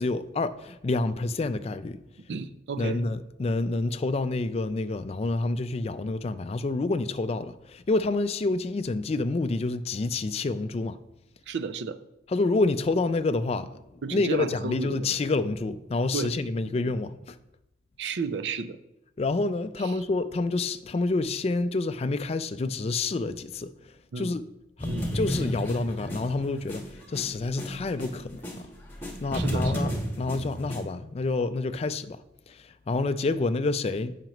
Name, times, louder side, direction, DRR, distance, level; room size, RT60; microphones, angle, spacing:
voice 1, 0.0-2.0 2.8-11.0 12.3-17.4 19.2-24.4 24.8-24.9 25.1-28.6 29.2-29.9 30.2-32.2 32.5-34.1, left 3 dB, 35° left, 0.3 m, -28 dB
voice 2, 2.3-3.0 11.5-12.0 14.0-15.2 16.1-16.3 18.0-18.8 19.8-19.9 24.1-24.3 24.8-25.1 29.3-29.9, right 5 dB, 65° right, 0.4 m, -33 dB
sound 1, 24.8-28.6 28.9-30.8, equal, 10° left, 1.3 m, -31 dB
8.9 x 5.8 x 3.0 m
head